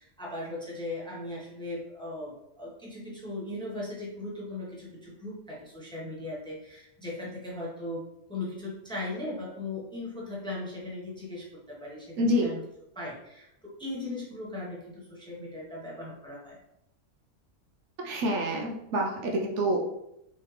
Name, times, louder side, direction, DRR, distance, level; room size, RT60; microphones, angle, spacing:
voice 1, 0.0-8.0 8.3-12.6 12.9-16.6, left 2 dB, 5° left, -5 dB, 0.8 m, -38 dB
voice 2, 12.2-12.5 18.0-19.8, equal, 70° right, 0 dB, 0.9 m, -27 dB
3.7 x 3.1 x 3.1 m, 0.83 s
omnidirectional pair, 1.3 m